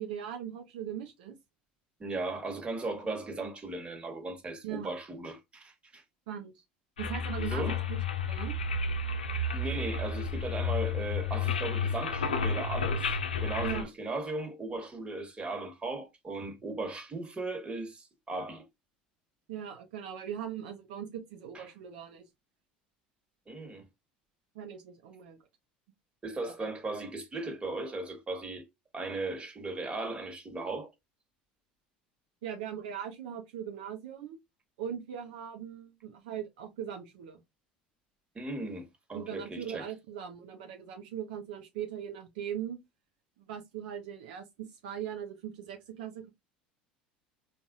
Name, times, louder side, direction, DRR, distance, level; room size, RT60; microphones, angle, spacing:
voice 1, 0.0-1.4 4.6-4.9 6.3-6.6 7.0-8.5 13.6-13.9 19.5-22.2 24.5-25.4 26.6-26.7 32.4-34.4 34.8-37.4 39.1-42.8 43.5-46.3, right 9 dB, 70° right, 0.7 m, -40 dB
voice 2, 2.0-6.0 7.4-7.8 9.5-18.6 21.5-21.6 23.5-23.8 26.2-28.6 28.9-30.9 38.3-39.8, right 2 dB, 25° right, 1.4 m, -37 dB
sound 1, 7.0-13.8, left 4 dB, 90° left, 0.5 m, -31 dB
4.0 x 2.4 x 2.4 m
hypercardioid pair, 75°, 5 cm